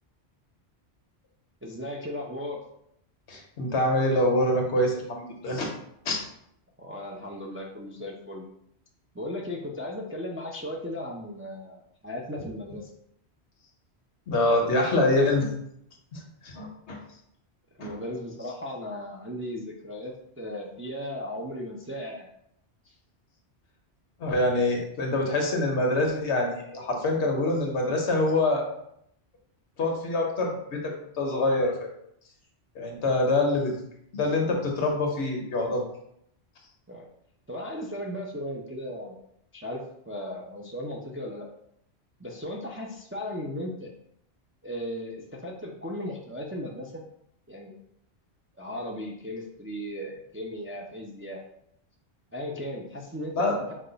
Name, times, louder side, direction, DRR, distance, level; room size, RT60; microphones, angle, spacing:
voice 1, 1.6-2.6 6.8-8.4 9.2-11.8 12.0-12.8 17.8-20.1 20.4-22.2 36.9-37.0 37.5-39.1 39.5-39.8 40.1-41.5 42.2-43.9 44.6-46.9 47.5-47.7 48.6-51.4 52.3-53.5, left 1 dB, 20° right, -1 dB, 0.3 m, -36 dB
voice 2, 3.3-5.7 6.0-6.2 12.4-12.5 14.3-15.5 16.1-17.0 17.8-18.0 24.2-28.7 29.8-31.9 32.7-33.7 34.1-35.8 53.3-53.6, left 2 dB, 85° left, 1 dB, 1.2 m, -25 dB
5.3 x 2.3 x 3.8 m, 0.74 s
omnidirectional pair, 1.1 m